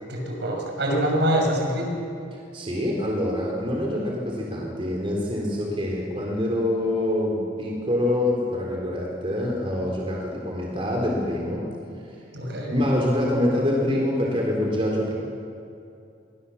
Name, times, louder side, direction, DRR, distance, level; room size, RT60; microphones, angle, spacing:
voice 1, 0.1-1.9 12.3-12.7, right 1 dB, 60° right, 1 dB, 6.6 m, -24 dB
voice 2, 2.5-11.6 12.1-12.2 12.7-15.1, left 1 dB, 30° right, -2 dB, 3.8 m, -25 dB
26.0 x 23.5 x 7.2 m, 2.7 s
head